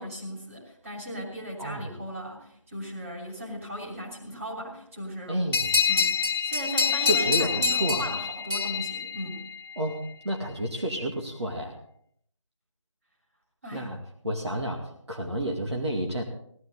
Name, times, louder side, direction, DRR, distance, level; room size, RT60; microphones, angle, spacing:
voice 1, 0.0-5.6 5.9-9.5 13.6-13.9, equal, 25° right, -3 dB, 3.1 m, -37 dB
voice 2, 1.6-1.9 5.3-5.7 7.0-8.1 9.8-11.8 13.7-14.0 14.2-16.2, equal, 55° right, 0 dB, 2.3 m, -30 dB
sound 1, 5.5-9.8, left 5 dB, 45° left, 2.2 m, -26 dB
18.0 x 12.5 x 4.0 m, 0.66 s
figure-of-eight pair, 175°, 16 cm